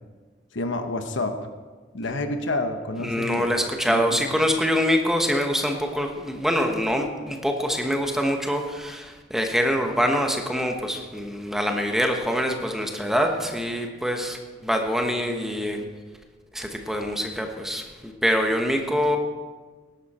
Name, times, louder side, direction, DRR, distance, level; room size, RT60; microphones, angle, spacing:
voice 1, 0.5-1.4 1.9-3.5 3.9-4.2, left 2 dB, 65° left, 7 dB, 1.1 m, -28 dB
voice 2, 3.0-15.8 16.5-19.2, equal, ahead, 3 dB, 1.2 m, -25 dB
17.5 x 11.5 x 4.3 m, 1.4 s
head